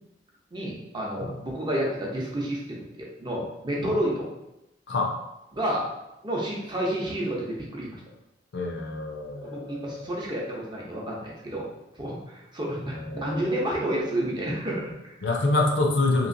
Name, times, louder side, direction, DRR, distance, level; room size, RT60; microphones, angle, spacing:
voice 1, 0.5-4.3 5.5-5.9 6.2-8.0 9.4-11.7 12.0-15.1, right 1 dB, 25° right, -3 dB, 0.6 m, -30 dB
voice 2, 8.5-10.1 12.9-13.5 15.2-16.3, left 2 dB, 75° left, 2 dB, 0.5 m, -26 dB
3.0 x 2.9 x 2.6 m, 0.89 s
head